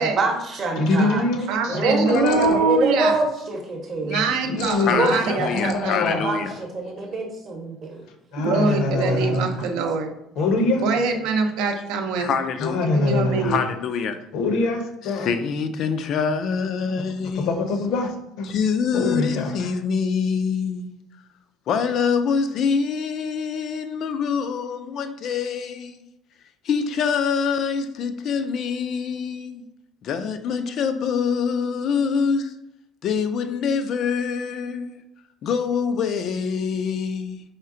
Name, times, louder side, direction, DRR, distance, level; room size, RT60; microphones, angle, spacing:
voice 1, 0.0-1.2 1.7-2.1 2.4-4.2 4.9-5.3 5.7-5.8 6.2-8.0 8.6-9.4 9.8-9.9 10.4-10.5, right 2 dB, 30° right, 0.8 m, -26 dB
voice 2, 0.8-2.7 3.1-3.2 4.5-6.2 8.3-9.5 10.4-10.9 12.6-13.7 14.3-15.3 17.3-18.1 18.4-18.5 18.9-19.7, left 3 dB, 60° left, 0.7 m, -24 dB
voice 3, 1.5-3.2 4.0-6.0 8.3-10.1 10.8-12.4 12.8-13.6, right 4 dB, 75° right, 0.6 m, -24 dB
voice 4, 4.9-6.5 12.2-12.8 13.4-14.2 15.1-17.6 18.4-20.9 21.7-26.0 26.6-29.7 30.0-32.5 33.0-35.0 35.4-37.4, left 6 dB, 45° left, 0.3 m, -25 dB
4.3 x 3.3 x 3.7 m
cardioid pair, 170°, 0 cm